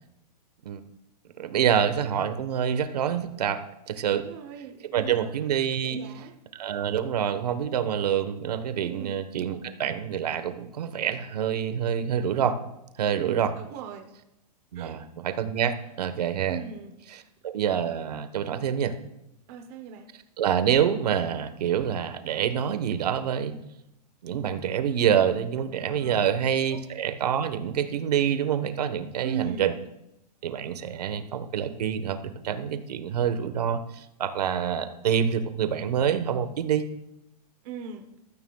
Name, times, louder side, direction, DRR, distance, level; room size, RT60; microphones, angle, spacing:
voice 1, 1.4-4.2 4.9-6.0 6.5-12.6 13.0-13.5 14.7-16.6 17.4-18.9 20.4-23.6 24.2-29.7 30.4-36.8, right 8 dB, 70° right, 9 dB, 1.2 m, -26 dB
voice 2, 4.1-5.4 5.8-6.3 8.8-9.2 13.1-14.1 14.7-15.0 16.5-17.3 19.5-20.1 26.0-26.4 26.7-26.8 29.2-29.7 37.6-38.1, right 8 dB, 25° right, 4 dB, 0.8 m, -39 dB
19.0 x 13.5 x 2.3 m, 0.87 s
supercardioid pair, 175°, 21 cm